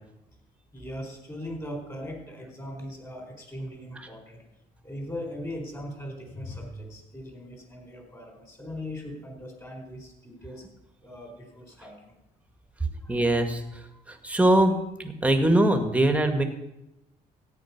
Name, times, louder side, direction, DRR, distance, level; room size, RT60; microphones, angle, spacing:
voice 1, 0.7-4.4 4.8-10.6 11.0-12.1 13.0-13.2, left 1 dB, 20° left, 2 dB, 4.2 m, -39 dB
voice 2, 13.1-13.6 14.1-14.7 15.0-16.4, right 1 dB, 10° right, 6 dB, 1.8 m, -22 dB
14.5 x 9.0 x 5.9 m, 0.90 s
cardioid pair, 110°, 17 cm